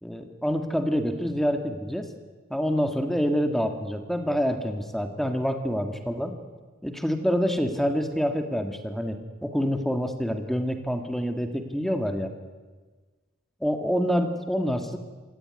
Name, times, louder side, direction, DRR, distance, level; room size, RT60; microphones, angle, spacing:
voice 1, 0.0-2.1 2.5-6.3 6.8-12.3 13.6-15.0, equal, ahead, 6 dB, 1.9 m, -27 dB
26.5 x 17.5 x 9.9 m, 1.4 s
head